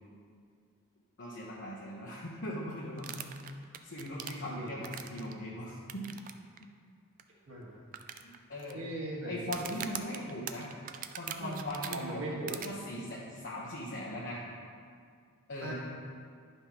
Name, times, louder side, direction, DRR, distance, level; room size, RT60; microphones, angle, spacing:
voice 1, 1.2-3.2 3.8-6.0 8.2-8.8 9.2-10.7 11.2-12.2 12.5-14.4 15.5-15.7, left 1 dB, 55° left, -6 dB, 1.1 m, -40 dB
sound 1, 3.0-5.3 5.9-6.3 6.6-6.7 7.2-7.3 7.9-8.7 9.4-12.0 12.5-12.7, right 9 dB, 40° right, 0.4 m, -41 dB
voice 2, 4.5-4.8 7.5-7.8 8.7-9.8 11.4-11.5 11.9-12.6 15.6-15.7, right 1 dB, 65° right, -5 dB, 1.7 m, -39 dB
11.0 x 5.5 x 3.0 m, 2.2 s
head